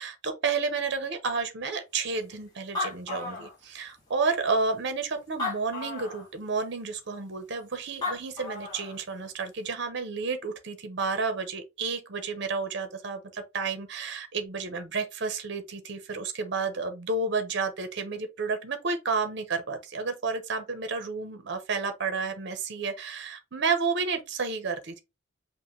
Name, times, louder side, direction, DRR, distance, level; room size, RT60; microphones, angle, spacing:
voice 1, 0.0-25.0, right 4 dB, 60° right, 0.7 m, -31 dB
Animal, 2.3-2.4 2.6-4.0 4.7-4.8 5.3-6.3 7.7-7.8 8.0-9.0, left 3 dB, 20° left, 2.0 m, -34 dB
5.4 x 2.2 x 3.1 m
head